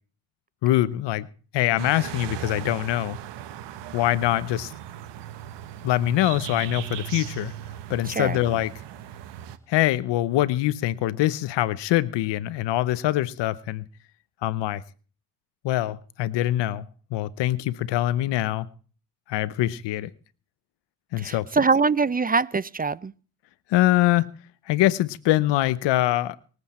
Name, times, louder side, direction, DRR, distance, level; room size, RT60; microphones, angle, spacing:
voice 1, 0.6-1.3 1.5-3.2 3.9-4.7 5.8-7.5 7.9-8.7 9.7-13.8 14.4-14.8 15.6-16.9 17.1-18.7 19.3-20.1 21.1-21.5 23.7-24.3 24.7-26.4, left 15 dB, 85° left, 0.9 m, -23 dB
sound 1, 1.8-9.6, right 11 dB, 85° right, 1.3 m, -37 dB
voice 2, 8.1-8.4 21.2-23.1, right 4 dB, 20° right, 0.5 m, -23 dB
24.5 x 8.1 x 4.3 m
supercardioid pair, 60°, 42 cm